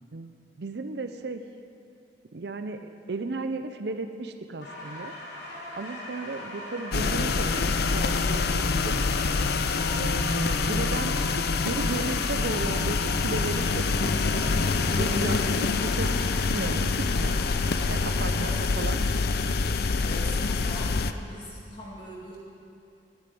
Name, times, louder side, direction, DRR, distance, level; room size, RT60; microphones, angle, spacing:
voice 1, 0.1-1.4 2.3-5.1 5.8-9.0 9.9-13.8 14.1-14.2 15.0-17.4 17.9-18.5 18.8-19.0, right 3 dB, 65° right, 8 dB, 0.6 m, -35 dB
sound 1, 4.6-18.5, left 1 dB, 80° left, 4.0 m, -40 dB
sound 2, 6.9-21.1, left 4 dB, 55° left, 0.5 m, -26 dB
sound 3, 13.8-18.9, equal, 30° right, 3.0 m, -41 dB
voice 2, 18.3-18.7 19.7-22.4, equal, 25° left, -5 dB, 2.1 m, -42 dB
11.0 x 9.9 x 9.2 m, 2.5 s
head